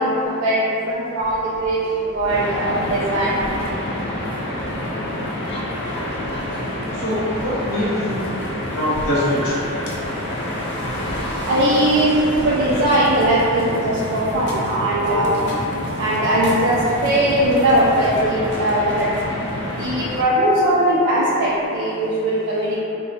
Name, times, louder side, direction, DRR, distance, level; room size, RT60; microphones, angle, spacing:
voice 1, 0.0-3.3 11.4-15.4 16.0-19.1 19.8-22.8, right 1 dB, 60° right, -8 dB, 0.3 m, -19 dB
sound 1, 2.3-20.2, left 1 dB, 55° left, 0.4 m, -28 dB
voice 2, 6.9-8.3 8.7-9.6, left 1 dB, 70° left, -11 dB, 0.9 m, -23 dB
2.6 x 2.1 x 2.7 m, 2.9 s
head